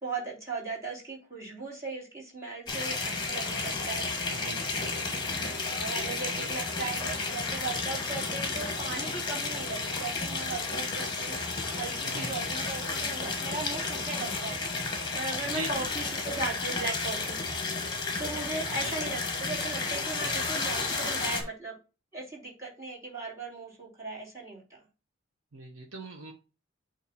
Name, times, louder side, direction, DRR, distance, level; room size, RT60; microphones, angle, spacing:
voice 1, 0.0-4.1 5.7-11.4 11.7-14.6 15.1-17.4 18.2-21.7 22.1-24.8, right 3 dB, 15° right, -3 dB, 2.9 m, -37 dB
sound 1, 2.7-21.4, left 3 dB, 20° left, 1.3 m, -32 dB
voice 2, 4.3-4.9 6.4-6.5 12.0-12.5 15.4-15.8 18.7-18.9 25.5-26.3, right 2 dB, 85° right, 0 dB, 1.0 m, -40 dB
8.5 x 2.9 x 4.1 m, 0.32 s
head